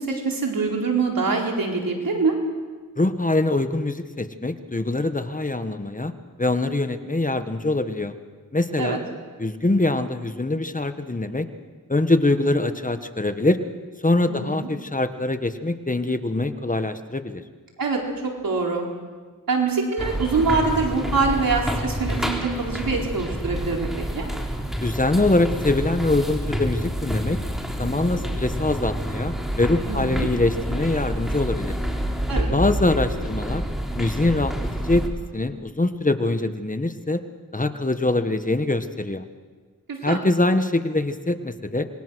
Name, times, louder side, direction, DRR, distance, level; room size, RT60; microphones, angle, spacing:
voice 1, 0.0-2.3 8.8-9.0 14.2-14.7 17.8-18.9 19.5-23.9 24.1-24.3 29.9-30.3 32.3-32.5 39.9-40.2, right 4 dB, 80° right, 0 dB, 4.2 m, -24 dB
voice 2, 3.0-6.1 6.4-8.1 8.5-9.0 9.4-11.5 11.9-13.6 14.0-17.4 24.8-27.4 27.8-31.7 32.5-33.6 34.0-35.1 35.3-37.2 37.5-39.3 40.0-41.8, left 2 dB, 25° left, 9 dB, 1.5 m, -23 dB
sound 1, 20.0-35.1, equal, ahead, 3.9 m, -28 dB
26.5 x 21.5 x 6.4 m, 1.5 s
cardioid pair, 50°, 34 cm